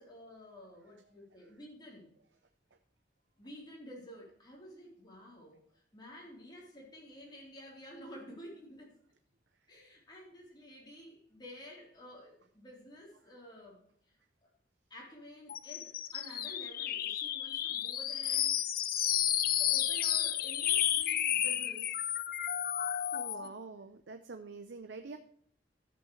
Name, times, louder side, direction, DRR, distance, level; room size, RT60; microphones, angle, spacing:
voice 1, 0.0-2.1 3.4-9.0 9.7-14.5 14.9-18.8 19.6-22.0 23.3-23.5, left 1 dB, 25° left, -3 dB, 3.8 m, -51 dB
sound 1, 15.5-23.5, left 11 dB, 55° left, 0.6 m, -32 dB
voice 2, 23.1-25.2, right 3 dB, 85° right, 7 dB, 0.7 m, -46 dB
13.0 x 8.0 x 3.2 m, 0.62 s
head